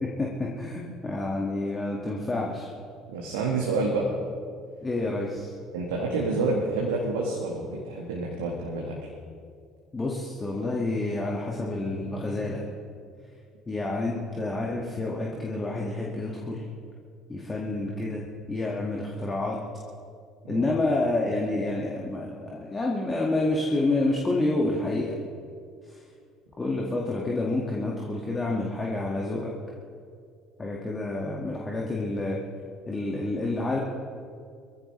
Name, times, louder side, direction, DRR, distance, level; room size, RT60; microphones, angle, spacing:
voice 1, 0.0-2.7 4.8-5.5 9.9-12.6 13.7-16.6 17.3-18.2 18.5-19.6 20.5-25.1 25.9-26.0 26.6-29.5 30.6-32.4 32.9-33.8, left 2 dB, 20° left, -2 dB, 2.1 m, -28 dB
voice 2, 3.1-4.1 5.7-9.0 20.4-20.7, right 3 dB, 70° right, -2 dB, 1.9 m, -28 dB
22.5 x 15.0 x 3.4 m, 2.3 s
figure-of-eight pair, 55°, 0 cm